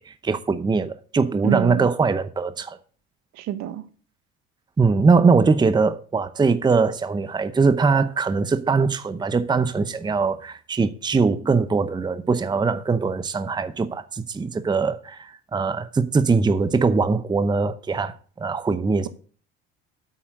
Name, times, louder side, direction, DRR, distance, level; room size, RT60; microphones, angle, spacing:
voice 1, 0.0-2.8 4.8-19.1, right 4 dB, 15° right, 0.7 m, -21 dB
voice 2, 1.4-1.9 3.4-3.8, right 10 dB, 65° right, 1.3 m, -26 dB
8.6 x 7.7 x 6.3 m
supercardioid pair, 100°, 29 cm